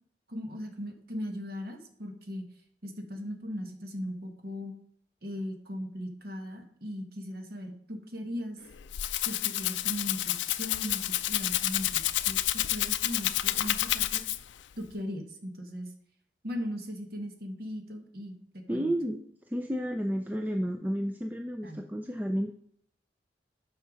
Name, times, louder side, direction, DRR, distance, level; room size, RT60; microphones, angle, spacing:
voice 1, 0.3-2.5 2.8-4.7 5.2-8.6 9.2-14.2 14.8-15.9 16.4-18.9 21.6-21.8, equal, 55° right, 4 dB, 1.4 m, -38 dB
Rattle (instrument), 8.7-14.6, left 14 dB, 80° left, 0.4 m, -29 dB
voice 2, 18.7-19.2 19.5-22.5, equal, 10° right, 5 dB, 0.4 m, -31 dB
8.2 x 5.6 x 5.0 m, 0.65 s
head